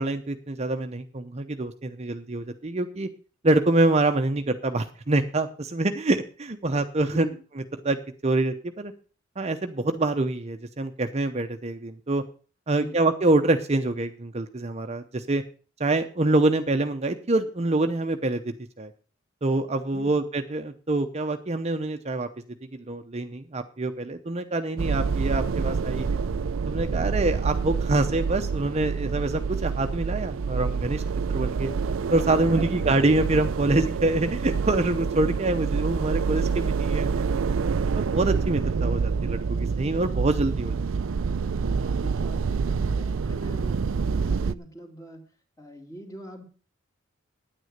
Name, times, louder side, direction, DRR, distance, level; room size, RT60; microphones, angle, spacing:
voice 1, 0.0-3.1 3.4-7.3 7.8-8.9 9.4-12.2 12.7-15.4 15.8-18.9 19.4-22.3 22.9-26.2 26.7-31.0 31.3-31.7 32.1-37.2 37.9-40.8 41.7-41.9, right 2 dB, 35° right, 8 dB, 0.7 m, -25 dB
voice 2, 7.0-7.4 12.7-13.0 32.4-32.8 41.9-45.2 45.6-46.4, equal, 15° left, 4 dB, 2.2 m, -42 dB
sound 1, 24.8-44.5, right 5 dB, 90° right, 0.5 m, -27 dB
9.7 x 9.5 x 6.6 m, 0.39 s
head